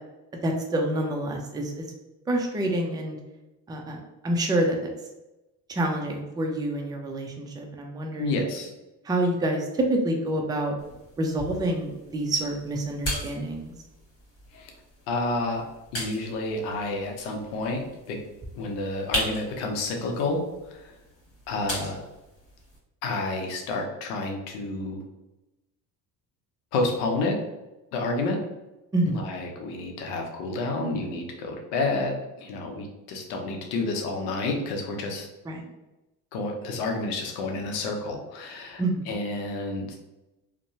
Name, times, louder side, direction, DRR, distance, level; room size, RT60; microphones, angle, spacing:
voice 1, 0.4-1.8 2.3-3.2 3.7-4.8 5.7-8.4 9.0-10.7 11.2-13.7 28.9-29.2 35.5-35.7 38.8-39.1, right 1 dB, 10° right, 1 dB, 0.4 m, -27 dB
voice 2, 8.2-8.7 14.5-14.7 15.1-15.7 15.9-18.2 18.6-20.9 21.5-22.0 23.0-25.0 26.7-27.4 27.9-28.4 29.1-35.3 36.3-40.0, left 2 dB, 90° left, 2 dB, 0.7 m, -30 dB
sound 1, 10.8-22.8, equal, 30° left, 1.3 m, -38 dB
2.8 x 2.1 x 2.6 m, 1.0 s
supercardioid pair, 75°, 44 cm